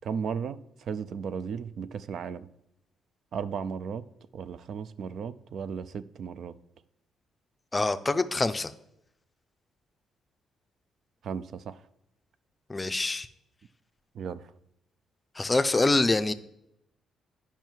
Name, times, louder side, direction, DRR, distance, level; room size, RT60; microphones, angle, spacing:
voice 1, 0.0-2.5 3.3-4.1 4.3-6.6 11.2-11.8 14.1-14.5, right 6 dB, 65° right, 0.4 m, -35 dB
voice 2, 7.7-8.7 12.7-13.3 15.4-16.3, left 2 dB, 20° left, 0.5 m, -25 dB
9.1 x 5.7 x 4.5 m
cardioid pair, 90°, 0 cm